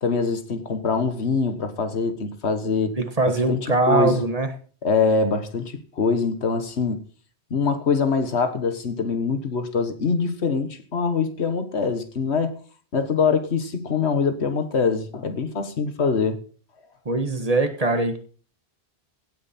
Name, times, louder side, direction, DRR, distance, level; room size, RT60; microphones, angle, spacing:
voice 1, 0.0-3.0 3.3-3.6 3.9-4.2 4.8-7.0 7.5-12.5 12.9-16.4, left 5 dB, 80° left, 1.7 m, -24 dB
voice 2, 3.0-4.5 17.0-18.2, right 2 dB, 35° right, 1.5 m, -22 dB
16.5 x 9.0 x 4.3 m
omnidirectional pair, 1.1 m